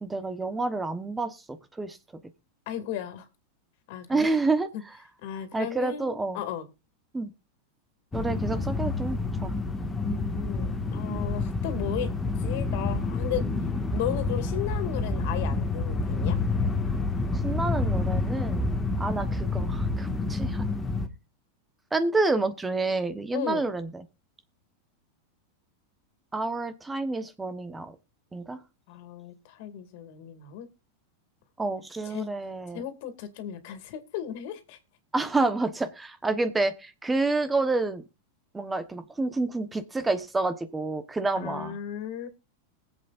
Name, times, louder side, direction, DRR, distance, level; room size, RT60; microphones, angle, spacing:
voice 1, 0.0-1.4 1.8-2.0 4.1-4.7 5.5-6.4 7.1-7.3 8.1-9.5 17.4-18.7 19.0-20.6 21.9-24.0 26.3-27.9 28.3-28.6 31.6-32.8 35.1-38.0 38.5-41.7, right 3 dB, 10° right, 1.1 m, -28 dB
voice 2, 2.7-3.3 3.9-4.3 4.7-4.8 5.2-6.7 10.0-12.1 12.4-13.5 13.9-16.4 23.3-23.7 28.9-30.7 32.1-32.3 32.7-34.8 41.4-42.3, left 10 dB, 60° left, 2.3 m, -35 dB
sound 1, 8.1-21.1, left 3 dB, 10° left, 1.7 m, -28 dB
21.0 x 7.9 x 2.5 m
supercardioid pair, 130°, 0 cm